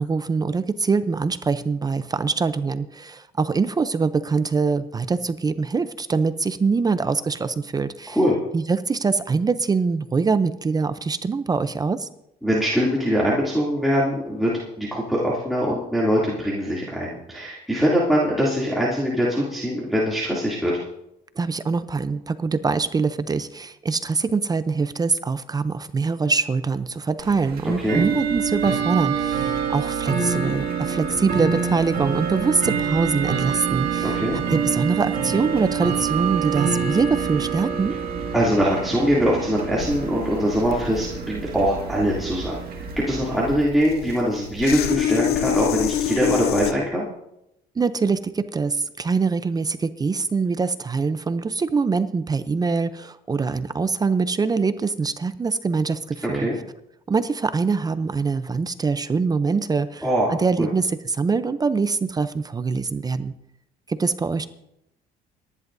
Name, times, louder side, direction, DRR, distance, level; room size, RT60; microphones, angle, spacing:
voice 1, 0.0-8.2 8.5-12.1 21.4-34.2 34.5-37.9 47.8-56.5 57.1-63.3 63.9-64.5, right 4 dB, 20° right, 12 dB, 0.6 m, -24 dB
voice 2, 12.4-14.5 14.8-20.8 27.6-28.0 34.0-34.4 38.3-47.1 56.3-56.6 60.0-60.7, equal, ahead, -7 dB, 2.8 m, -22 dB
Bell / Tick-tock, 27.2-43.5, right 7 dB, 65° right, 1.9 m, -27 dB
sound 1, 39.8-46.7, left 10 dB, 70° left, 0.8 m, -27 dB
28.5 x 11.0 x 2.7 m, 0.84 s
cardioid pair, 110°, 17 cm